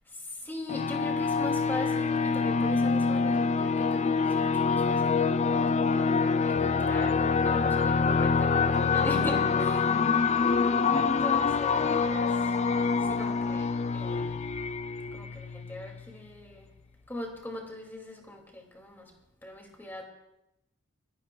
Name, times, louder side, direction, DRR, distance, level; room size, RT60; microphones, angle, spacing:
voice 1, 0.1-5.4 6.4-9.9 10.9-12.6 13.0-14.4 15.1-16.7 17.1-19.1 19.4-20.1, left 1 dB, 10° left, 1 dB, 2.3 m, -40 dB
sound 1, 0.7-16.0, left 5 dB, 30° left, 0.4 m, -26 dB
25.0 x 14.5 x 2.3 m, 0.91 s
head